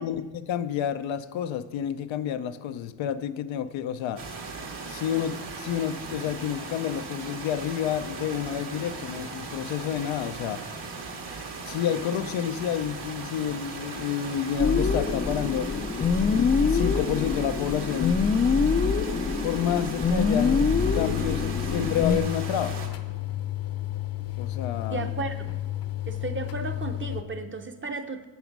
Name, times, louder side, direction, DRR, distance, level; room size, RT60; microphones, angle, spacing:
voice 1, 0.0-4.2 4.9-10.6 11.6-15.7 16.2-18.3 19.4-22.8 24.4-25.1, left 9 dB, 85° left, 10 dB, 0.7 m, -30 dB
sound 1, 4.2-22.9, right 4 dB, 65° right, 1.8 m, -38 dB
sound 2, 14.6-22.2, left 5 dB, 20° left, 0.4 m, -25 dB
sound 3, 20.7-27.2, left 14 dB, 50° left, 0.8 m, -32 dB
voice 2, 24.9-25.5 26.1-28.2, right 3 dB, 25° right, 7 dB, 0.8 m, -34 dB
9.4 x 7.1 x 6.0 m, 1.2 s
cardioid pair, 100°, 45 cm